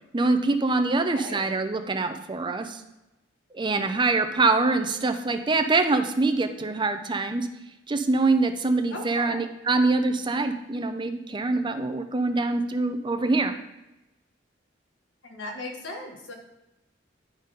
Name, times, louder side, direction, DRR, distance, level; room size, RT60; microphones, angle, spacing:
voice 1, 0.1-2.8 3.5-7.5 7.9-13.6, right 3 dB, 25° right, 7 dB, 0.5 m, -24 dB
voice 2, 1.1-1.4 8.9-9.4 15.2-16.3, left 1 dB, 90° left, 1 dB, 1.6 m, -37 dB
10.5 x 4.0 x 5.2 m, 0.94 s
head